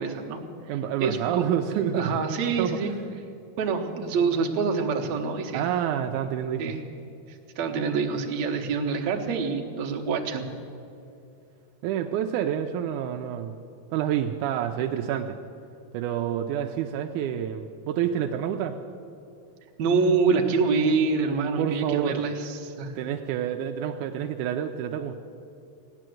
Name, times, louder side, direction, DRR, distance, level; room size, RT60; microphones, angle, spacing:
voice 1, 0.0-1.5 1.9-2.9 3.6-5.7 6.6-6.8 7.3-10.4 19.8-23.0, right 5 dB, 65° right, 3 dB, 2.3 m, -26 dB
voice 2, 0.7-2.2 2.6-2.8 5.5-6.7 11.8-13.5 13.9-15.4 15.9-18.8 21.6-22.2 23.0-25.2, right 10 dB, 85° right, 5 dB, 2.1 m, -28 dB
16.5 x 10.0 x 7.7 m, 2.6 s
omnidirectional pair, 3.5 m